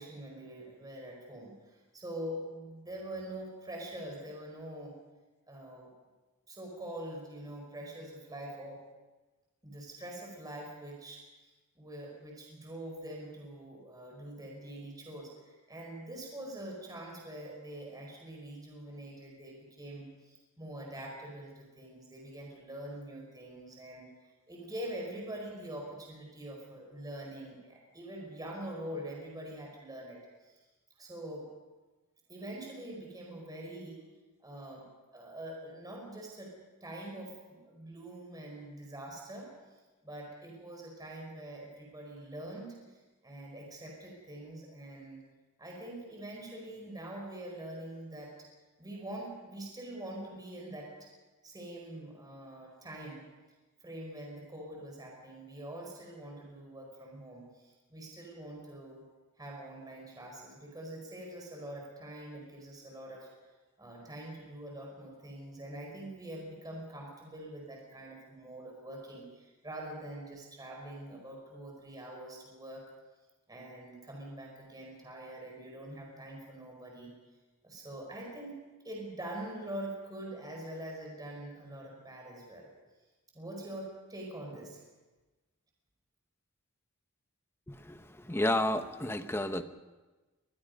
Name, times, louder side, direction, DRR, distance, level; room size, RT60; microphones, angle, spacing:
voice 1, 0.0-5.0 5.5-5.9 6.5-8.8 9.6-11.2 11.7-30.6 31.0-31.5 32.3-34.0 34.4-45.2 45.6-48.5 48.8-51.1 51.4-53.2 53.8-59.0 59.4-63.3 63.8-72.8 73.5-77.1 77.6-82.7 83.3-84.8, right 1 dB, 15° right, -1 dB, 4.9 m, -44 dB
voice 2, 87.7-89.6, left 1 dB, 10° left, 9 dB, 1.0 m, -31 dB
25.0 x 21.5 x 5.4 m, 1.2 s
head